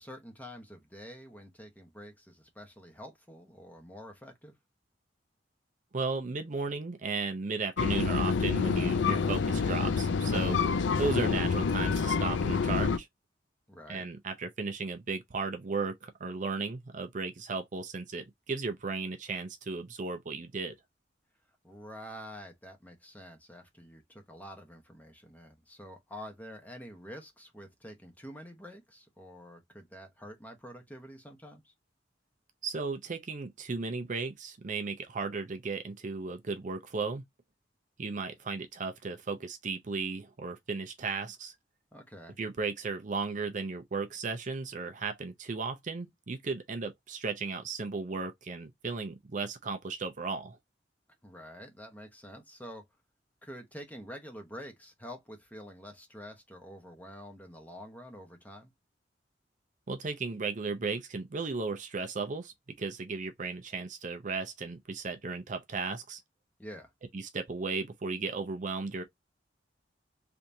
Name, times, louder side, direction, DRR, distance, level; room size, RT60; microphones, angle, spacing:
voice 1, 0.0-4.5 13.7-14.1 21.6-31.7 41.9-42.4 51.2-52.9 53.4-58.7 66.6-66.9, equal, 10° left, 1.0 m, -47 dB
voice 2, 5.9-13.1 13.9-20.7 32.6-37.2 38.0-41.5 42.4-50.6 59.9-66.2 67.1-69.0, right 4 dB, 45° right, 0.6 m, -35 dB
sound 1, 7.8-13.0, left 5 dB, 80° left, 0.4 m, -27 dB
3.4 x 2.8 x 2.6 m
head